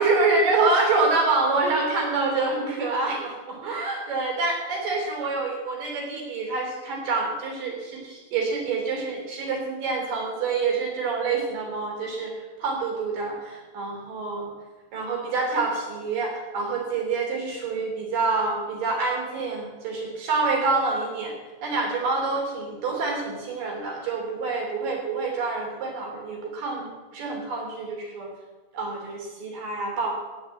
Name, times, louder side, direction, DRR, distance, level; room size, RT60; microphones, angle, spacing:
voice 1, 0.0-12.3 12.6-14.5 14.9-21.3 21.6-28.3 28.7-30.1, right 3 dB, 65° right, 0 dB, 4.9 m, -26 dB
18.0 x 6.0 x 7.7 m, 1.2 s
omnidirectional pair, 4.2 m